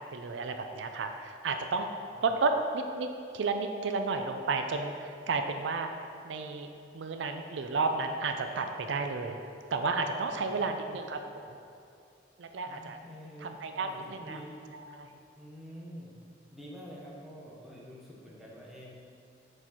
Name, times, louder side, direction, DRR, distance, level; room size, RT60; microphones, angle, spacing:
voice 1, 0.0-1.9 2.2-5.9 6.2-6.7 6.9-9.4 9.7-11.2 11.5-11.6 12.4-13.0 13.4-14.4 14.9-15.1, right 4 dB, 85° right, 6 dB, 0.4 m, -32 dB
voice 2, 10.5-11.0 12.7-14.6 15.4-16.1 16.5-18.9, equal, ahead, -6 dB, 1.0 m, -47 dB
6.7 x 4.2 x 4.3 m, 2.6 s
head